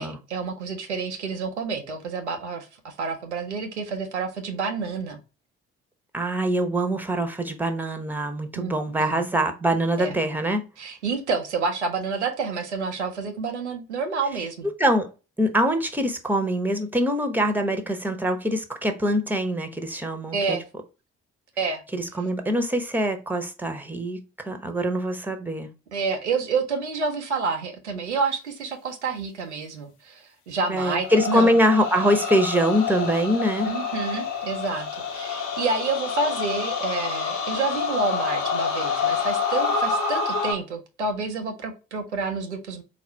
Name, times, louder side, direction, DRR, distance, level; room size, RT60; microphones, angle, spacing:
voice 1, 0.0-5.2 8.6-8.7 9.0-9.2 10.0-10.2 10.8-14.7 20.3-20.6 21.6-21.8 25.9-31.6 33.6-42.8, right 4 dB, 90° right, 0.6 m, -29 dB
voice 2, 6.1-10.6 14.8-15.1 15.4-20.6 21.9-25.7 30.7-33.7, equal, 5° right, 0.9 m, -24 dB
sound 1, 31.0-40.5, left 5 dB, 65° left, 1.0 m, -27 dB
4.1 x 2.4 x 4.2 m
figure-of-eight pair, 45°, 34 cm